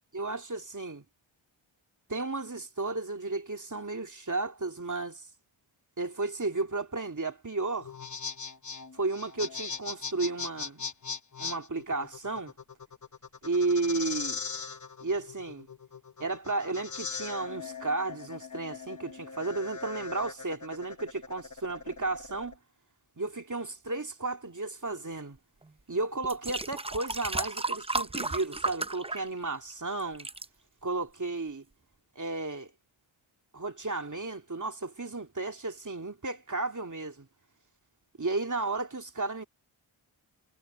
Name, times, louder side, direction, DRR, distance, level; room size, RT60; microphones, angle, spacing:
voice 1, 0.1-1.0 2.1-5.3 6.0-7.9 8.9-10.8 11.4-12.5 13.4-14.4 15.0-15.7 16.2-22.6 23.2-25.4 25.9-30.3 30.8-31.6 32.2-32.7 33.5-37.3 38.2-39.4, right 3 dB, 35° right, 2.7 m, -33 dB
sound 1, 7.8-22.5, left 5 dB, 35° left, 1.1 m, -40 dB
sound 2, 25.6-25.7 26.2-29.7 30.0-30.5 31.2-31.3, right 2 dB, 10° right, 0.5 m, -34 dB
wide cardioid pair, 55°, 49 cm